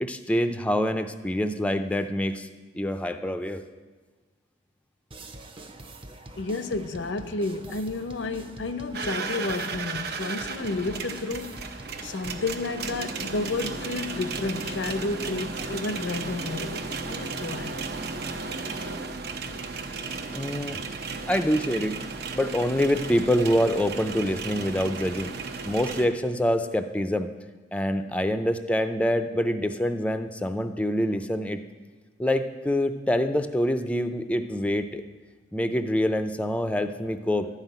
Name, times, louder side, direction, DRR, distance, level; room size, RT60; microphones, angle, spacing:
voice 1, 0.0-2.5 2.7-3.6 20.3-20.8 21.3-22.0 22.3-25.3 25.7-27.3 27.7-31.6 32.2-35.0 35.5-37.5, equal, 5° left, 0.4 m, -26 dB
sound 1, 5.1-12.5, right 1 dB, 30° right, 0.8 m, -45 dB
voice 2, 6.3-11.7 12.0-17.8, left 3 dB, 85° left, 0.7 m, -31 dB
sound 2, 8.9-26.1, right 4 dB, 60° right, 0.9 m, -34 dB
12.0 x 5.7 x 9.1 m
head